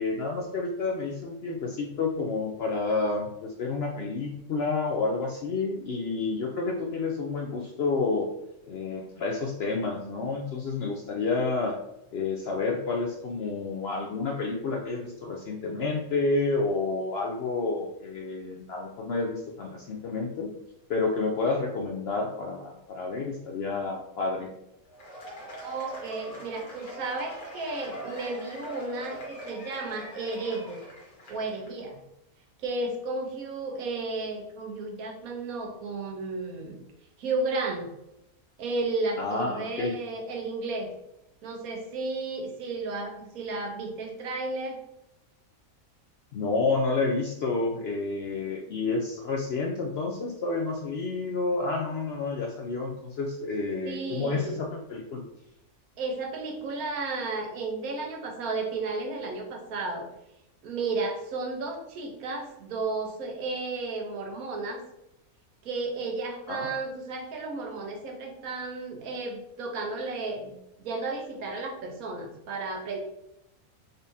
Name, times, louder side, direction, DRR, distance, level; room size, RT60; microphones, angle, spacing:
voice 1, 0.0-8.3 8.7-11.8 12.1-20.5 20.9-24.5 39.2-39.9 46.3-55.2 66.5-66.7, left 3 dB, 65° left, 1 dB, 0.6 m, -29 dB
Cheering / Applause / Crowd, 24.9-31.7, equal, 85° left, 1.6 m, -42 dB
voice 2, 25.6-30.8 31.3-32.0 32.6-36.8 37.2-37.9 38.6-40.9 41.4-44.8 53.8-54.6 56.0-60.1 60.6-64.8 65.6-73.0, right 3 dB, 80° right, 2 dB, 1.3 m, -33 dB
4.0 x 3.4 x 2.6 m, 0.85 s
omnidirectional pair, 1.5 m